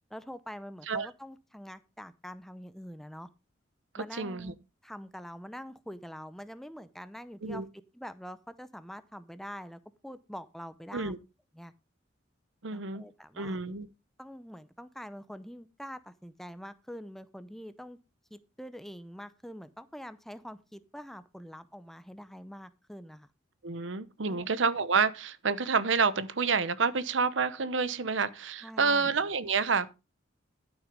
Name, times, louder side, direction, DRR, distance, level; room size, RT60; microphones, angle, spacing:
voice 1, 0.1-3.3 4.0-4.6 4.8-7.6 7.9-11.1 11.5-11.7 12.7-13.6 14.2-18.0 18.3-23.3 24.3-24.5 28.6-29.2, equal, ahead, 0.6 m, -45 dB
voice 2, 3.9-4.5 7.4-7.6 10.9-11.2 12.6-13.0 13.4-13.9 23.6-29.9, right 5 dB, 80° right, 0.9 m, -29 dB
12.5 x 6.3 x 5.2 m
head